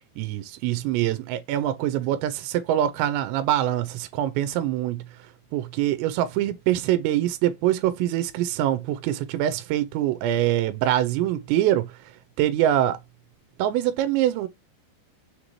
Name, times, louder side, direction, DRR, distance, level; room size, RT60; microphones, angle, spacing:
voice 1, 0.2-5.0 5.5-12.0 12.4-13.0 13.6-14.5, right 12 dB, 90° right, 2.8 m, -24 dB
6.6 x 2.7 x 2.9 m
omnidirectional pair, 4.9 m